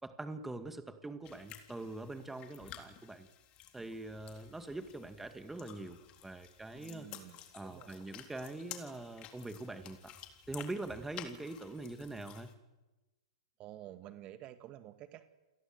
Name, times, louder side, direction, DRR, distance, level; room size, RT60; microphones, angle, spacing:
voice 1, 0.0-3.3 3.7-7.1 7.5-10.1 10.5-12.5, right 2 dB, 5° right, 8 dB, 2.2 m, -43 dB
sound 1, 1.2-12.5, left 10 dB, 35° left, 3.5 m, -53 dB
voice 2, 6.7-8.1 13.6-15.2, right 13 dB, 35° right, 10 dB, 1.8 m, -51 dB
29.5 x 22.0 x 7.9 m, 1.1 s
hypercardioid pair, 115°, 3 cm